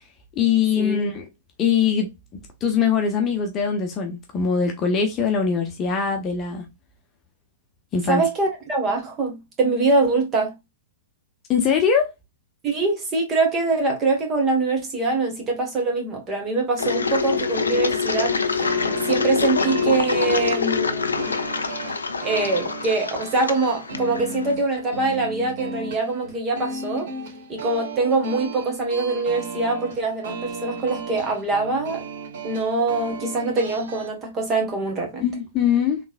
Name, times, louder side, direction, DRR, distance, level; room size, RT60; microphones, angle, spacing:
voice 1, 0.4-1.3 1.6-2.1 2.6-6.6 7.9-8.2 11.5-12.1 35.2-36.0, left 6 dB, 25° left, 0.9 m, -22 dB
voice 2, 8.1-10.5 12.6-18.7 19.1-21.4 22.2-27.1 27.5-32.0 32.4-35.2, right 3 dB, 25° right, 1.7 m, -23 dB
Engine, 16.8-24.5, left 5 dB, 75° left, 0.5 m, -25 dB
sound 1, 18.6-34.1, right 4 dB, 55° right, 1.3 m, -36 dB
3.8 x 3.4 x 2.5 m
figure-of-eight pair, 105°, 0 cm